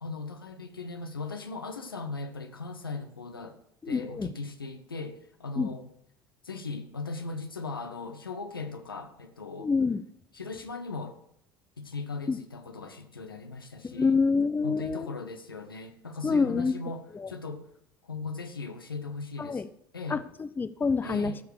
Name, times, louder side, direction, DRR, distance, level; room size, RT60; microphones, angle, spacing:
voice 1, 0.0-3.6 3.9-5.9 6.4-9.7 10.3-11.2 11.8-14.1 14.6-17.7 18.0-19.6 19.9-20.2 21.0-21.4, left 3 dB, 80° left, 1.1 m, -38 dB
voice 2, 3.8-4.3 5.6-5.7 9.6-10.0 12.3-12.4 13.8-15.1 16.2-16.8 17.1-17.3 19.4-19.7 20.1-21.3, left 4 dB, 15° left, 0.6 m, -27 dB
15.0 x 6.7 x 6.5 m
figure-of-eight pair, 65°, 12 cm